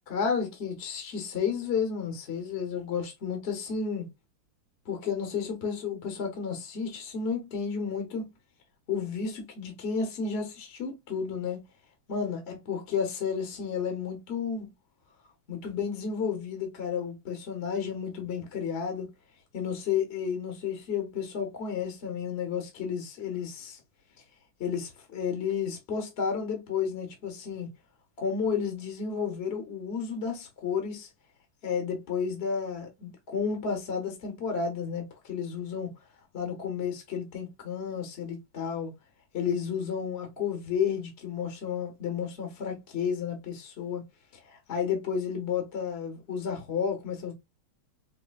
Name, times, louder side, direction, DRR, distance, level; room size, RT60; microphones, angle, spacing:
voice 1, 0.1-4.1 4.9-8.3 8.9-11.6 12.1-14.7 15.5-19.1 19.5-23.8 24.6-27.7 28.2-31.1 31.6-35.9 36.3-38.9 39.3-44.0 44.4-47.3, left 6 dB, 45° left, 0.8 m, -32 dB
4.9 x 2.7 x 2.3 m
omnidirectional pair, 2.3 m